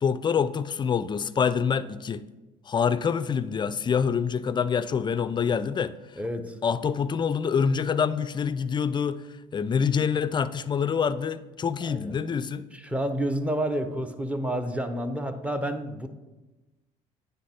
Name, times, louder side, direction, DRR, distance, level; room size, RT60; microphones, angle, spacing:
voice 1, 0.0-2.2 2.7-5.9 6.6-9.2 9.5-12.6, left 6 dB, 25° left, 0.4 m, -26 dB
voice 2, 6.2-6.6 11.8-12.2 12.7-16.1, right 1 dB, 5° right, 0.7 m, -29 dB
9.2 x 3.4 x 4.3 m
hypercardioid pair, 65°, 17 cm